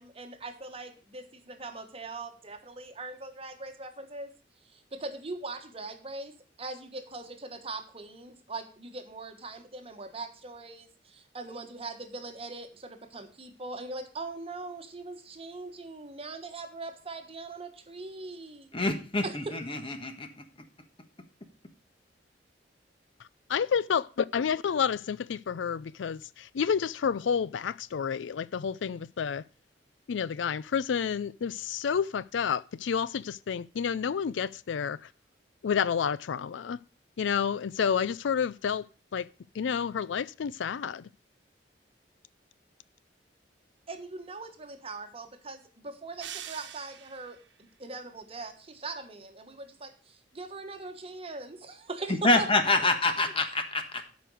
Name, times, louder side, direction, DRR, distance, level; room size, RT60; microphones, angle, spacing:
voice 1, 0.0-4.3 4.7-6.3 6.6-18.7 19.2-19.8 43.9-52.5 52.8-52.9, right 3 dB, 30° right, 1.3 m, -41 dB
voice 2, 18.7-20.3 52.2-54.1, left 2 dB, 30° left, 1.3 m, -26 dB
voice 3, 23.5-29.4 30.1-35.0 35.6-36.8 37.2-38.9 39.1-39.3 39.5-41.1, left 7 dB, 90° left, 0.4 m, -29 dB
sound 1, 46.2-47.5, right 9 dB, 75° right, 1.1 m, -43 dB
12.0 x 5.2 x 6.3 m
head